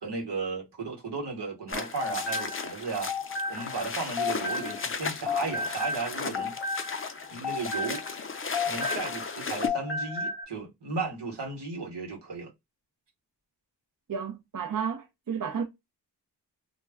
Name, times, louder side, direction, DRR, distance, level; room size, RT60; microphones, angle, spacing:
voice 1, 0.0-3.1 3.5-6.6 7.3-8.0 8.6-12.5, right 4 dB, 80° right, 1.1 m, -35 dB
sound 1, 1.7-5.0 5.3-9.3 9.6-10.4, left 4 dB, 80° left, 0.8 m, -33 dB
sound 2, 1.7-9.7, left 5 dB, 35° left, 0.4 m, -36 dB
voice 2, 14.1-15.6, right 6 dB, 50° right, 0.6 m, -32 dB
2.2 x 2.1 x 3.4 m
wide cardioid pair, 50°, 41 cm